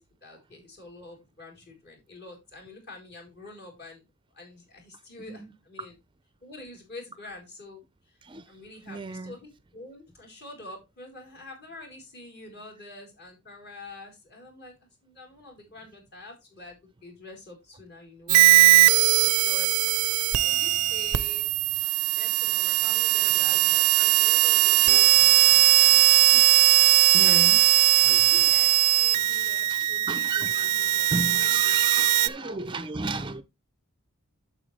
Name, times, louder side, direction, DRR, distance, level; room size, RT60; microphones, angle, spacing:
voice 1, 0.0-4.1 4.3-5.9 6.4-8.2 8.5-20.0 20.3-21.5 21.7-26.1 27.2-27.5 28.2-32.7, left 2 dB, 45° left, 4.1 m, -47 dB
voice 2, 8.2-8.5 8.9-9.4 18.4-18.5 18.9-19.2 23.2-23.6 24.9-25.1 26.3-26.4 27.1-27.6 28.0-28.5 29.3-30.7 31.1-33.4, right 3 dB, 20° right, 0.5 m, -35 dB
sound 1, 18.3-32.3, right 15 dB, 80° right, 0.5 m, -20 dB
9.0 x 7.4 x 3.2 m
head